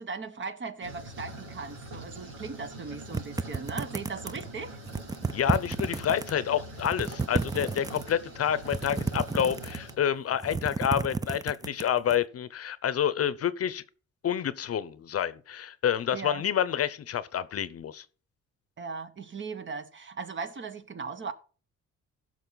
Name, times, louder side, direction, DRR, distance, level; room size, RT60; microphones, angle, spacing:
voice 1, 0.0-4.7 16.1-16.4 18.8-21.3, right 4 dB, 40° right, 1.1 m, -38 dB
sound 1, 0.8-9.9, right 1 dB, 85° right, 3.5 m, -44 dB
sound 2, 3.1-4.5 4.9-6.3 6.7-8.1 8.6-10.0 10.3-12.2, right 4 dB, 15° right, 0.5 m, -32 dB
voice 2, 5.3-13.8 14.2-18.0, left 9 dB, 50° left, 0.8 m, -28 dB
15.5 x 6.2 x 4.0 m
cardioid pair, 90°, 30 cm